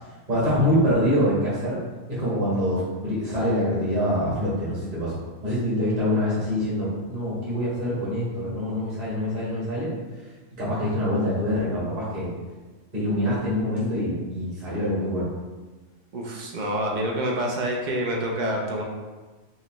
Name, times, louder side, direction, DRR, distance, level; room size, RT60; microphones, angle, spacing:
voice 1, 0.3-1.8 2.1-9.9 10.6-12.3 12.9-15.3 16.6-16.7, equal, 30° right, -9 dB, 1.4 m, -25 dB
voice 2, 16.1-18.8, right 1 dB, 55° right, -1 dB, 0.5 m, -27 dB
4.7 x 2.2 x 3.0 m, 1.3 s
omnidirectional pair, 1.4 m